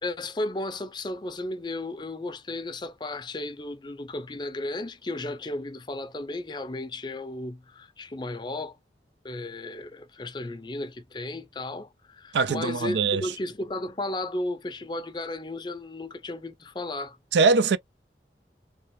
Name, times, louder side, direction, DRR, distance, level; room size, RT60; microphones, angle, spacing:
voice 1, 0.0-8.8 9.2-17.2, left 2 dB, 25° left, 0.5 m, -34 dB
voice 2, 12.3-13.2 17.3-17.8, right 4 dB, 80° right, 0.4 m, -22 dB
3.3 x 3.1 x 3.1 m
head